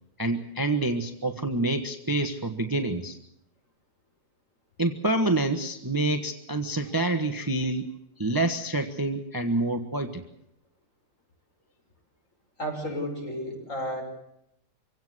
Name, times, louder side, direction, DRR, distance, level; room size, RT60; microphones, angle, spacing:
voice 1, 0.2-3.2 4.8-7.9 8.2-10.2, right 2 dB, 15° right, 7 dB, 1.2 m, -27 dB
voice 2, 12.6-14.0, equal, 45° left, 2 dB, 6.5 m, -32 dB
25.5 x 17.5 x 7.9 m, 0.78 s
omnidirectional pair, 1.8 m